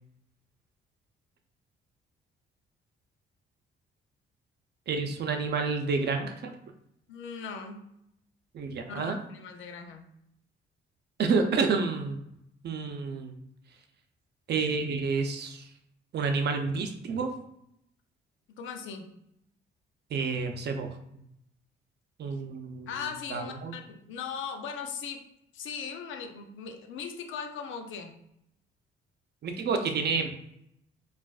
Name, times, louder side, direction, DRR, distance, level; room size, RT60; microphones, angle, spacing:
voice 1, 4.9-6.6 8.5-9.2 11.2-12.2 12.6-13.3 14.5-15.7 16.1-17.3 20.1-20.9 22.2-22.9 23.3-23.8 29.4-30.3, right 4 dB, 55° right, 5 dB, 0.6 m, -29 dB
voice 2, 7.1-7.8 8.9-10.0 18.6-19.1 22.9-25.2 25.5-28.1, left 6 dB, 80° left, 4 dB, 0.6 m, -39 dB
4.8 x 2.5 x 2.4 m, 0.77 s
cardioid pair, 90°, 20 cm